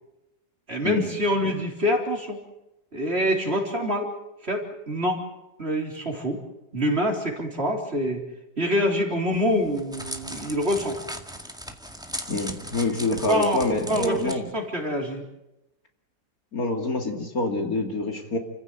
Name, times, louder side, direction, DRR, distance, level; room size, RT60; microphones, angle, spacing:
voice 1, 0.7-2.4 2.9-4.1 4.4-5.2 5.6-6.4 6.7-8.2 8.6-11.0 13.3-15.2, equal, 35° right, 1 dB, 4.2 m, -25 dB
Crackle, 9.4-14.3, equal, ahead, 1.9 m, -37 dB
voice 2, 12.3-14.5 16.5-18.4, left 2 dB, 60° left, 3 dB, 3.1 m, -26 dB
30.0 x 15.5 x 9.2 m, 0.95 s
omnidirectional pair, 1.8 m